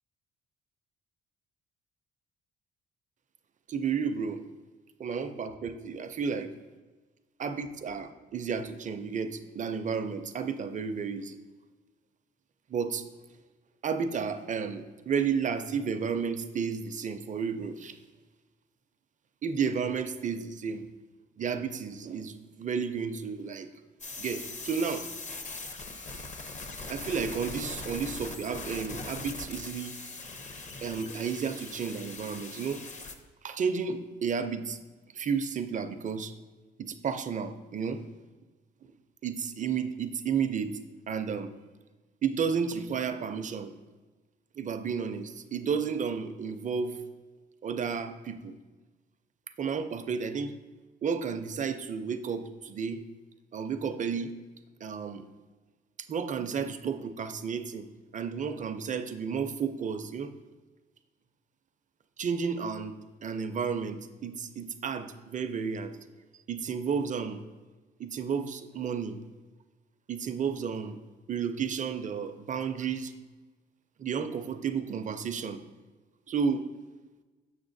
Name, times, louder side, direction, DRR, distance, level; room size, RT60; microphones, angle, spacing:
voice 1, 3.7-4.4 5.0-6.5 7.4-11.4 12.7-13.1 13.8-18.0 19.4-20.9 21.4-23.7 24.2-25.1 26.9-29.9 30.8-32.8 33.4-34.8 35.1-36.3 36.8-38.0 39.2-40.7 41.1-41.5 42.2-43.7 44.6-47.0 47.6-48.5 49.6-50.5 51.0-53.0 53.5-54.3 54.8-55.3 56.0-57.9 58.1-60.3 62.2-62.9 63.2-65.9 66.5-67.4 68.0-69.2 70.1-71.0 71.3-73.1 74.0-75.6 76.3-76.6, right 6 dB, 40° right, 9 dB, 0.5 m, -32 dB
sound 1, 24.0-33.2, left 3 dB, 35° left, 0.6 m, -41 dB
7.1 x 6.1 x 2.6 m, 1.3 s
cardioid pair, 90°, 20 cm